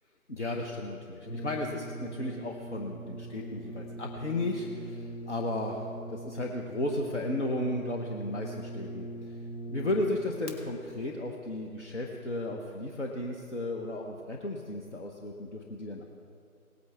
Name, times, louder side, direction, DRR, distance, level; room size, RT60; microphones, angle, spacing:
voice 1, 0.3-9.4 9.7-16.0, left 1 dB, 50° left, 0 dB, 1.1 m, -34 dB
Brass instrument, 1.2-10.6, right 1 dB, 90° left, 2.3 m, -42 dB
19.0 x 9.3 x 3.5 m, 2.5 s
figure-of-eight pair, 155°, 45 cm